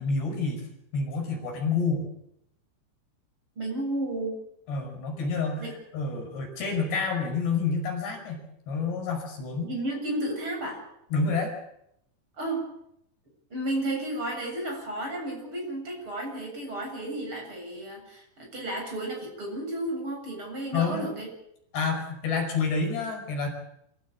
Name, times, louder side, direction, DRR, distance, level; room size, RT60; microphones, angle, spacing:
voice 1, 0.0-2.1 4.7-9.7 11.1-11.5 20.7-21.2 21.7-23.5, left 4 dB, 55° left, 3 dB, 7.2 m, -29 dB
voice 2, 3.6-4.4 5.6-5.7 9.6-10.8 12.4-12.6 13.5-21.3, right 1 dB, 25° right, 0 dB, 7.9 m, -32 dB
26.5 x 16.0 x 8.6 m, 0.77 s
omnidirectional pair, 6.0 m